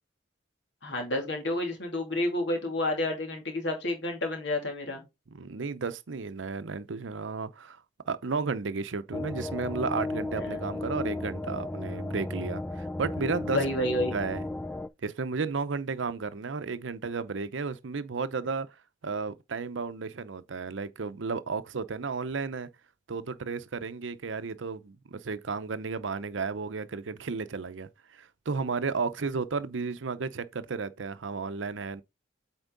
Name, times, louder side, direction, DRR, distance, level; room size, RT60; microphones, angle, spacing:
voice 1, 0.8-5.0 10.4-10.9 13.5-14.1, left 1 dB, 70° left, 2.6 m, -30 dB
voice 2, 5.3-7.8 8.1-13.7 14.1-14.5 15.0-18.7 19.0-22.7 23.1-32.0, right 4 dB, 80° right, 0.6 m, -33 dB
sound 1, 9.1-14.9, left 2 dB, 5° left, 0.3 m, -34 dB
8.2 x 4.4 x 3.8 m
head